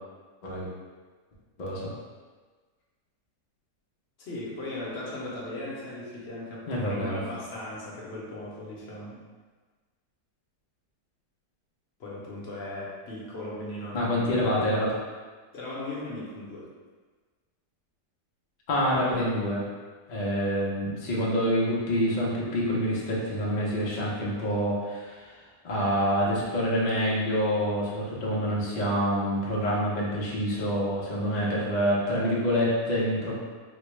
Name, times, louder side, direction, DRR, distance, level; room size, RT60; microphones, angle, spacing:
voice 1, 1.6-1.9 6.7-7.2 13.9-15.0 18.7-19.6 20.1-25.4 25.6-33.3, equal, 75° left, -5 dB, 0.4 m, -27 dB
voice 2, 4.2-9.2 12.0-14.5 15.5-16.7, left 1 dB, 55° left, -5 dB, 0.8 m, -37 dB
4.2 x 2.1 x 3.1 m, 1.4 s
omnidirectional pair, 1.7 m